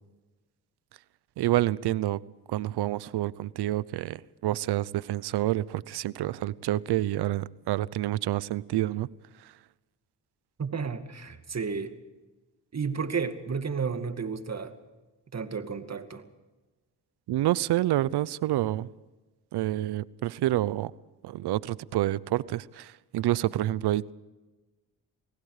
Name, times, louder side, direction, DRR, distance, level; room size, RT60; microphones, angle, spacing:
voice 1, 1.4-2.2 2.5-9.1 9.4-9.5 17.3-18.9 19.5-20.9 21.2-24.1, right 14 dB, 75° right, 21 dB, 0.8 m, -28 dB
voice 2, 10.6-11.9 12.7-14.7 15.3-16.2, right 5 dB, 40° right, 8 dB, 2.3 m, -32 dB
29.0 x 19.0 x 5.0 m, 1.2 s
supercardioid pair, 60°, 39 cm